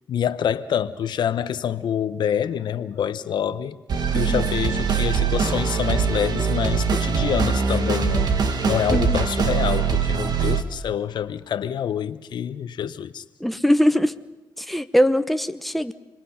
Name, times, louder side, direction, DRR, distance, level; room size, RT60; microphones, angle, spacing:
voice 1, 0.1-3.8 4.1-13.2, left 9 dB, 70° left, 0.8 m, -26 dB
sound 1, 3.9-10.6, right 6 dB, 60° right, 1.8 m, -22 dB
voice 2, 4.1-4.5 8.9-9.2 13.4-14.1 14.6-15.9, equal, ahead, 0.9 m, -21 dB
27.5 x 21.5 x 5.7 m
cardioid pair, 80°, 8 cm